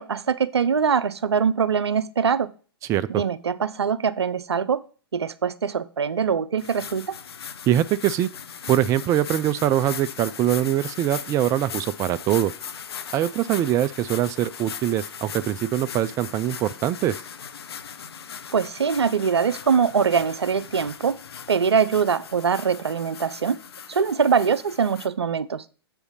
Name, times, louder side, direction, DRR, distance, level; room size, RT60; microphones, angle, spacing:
voice 1, 0.0-2.5 3.1-4.8 5.1-7.1 18.5-21.2 21.5-23.6 23.9-25.6, right 6 dB, 85° right, 0.5 m, -23 dB
voice 2, 2.9-3.2 7.7-8.3 8.7-12.5 13.1-17.2, right 12 dB, 25° right, 0.4 m, -23 dB
sound 1, 6.6-25.1, left 7 dB, 70° left, 0.7 m, -38 dB
8.0 x 3.4 x 5.5 m
hypercardioid pair, 115°, 13 cm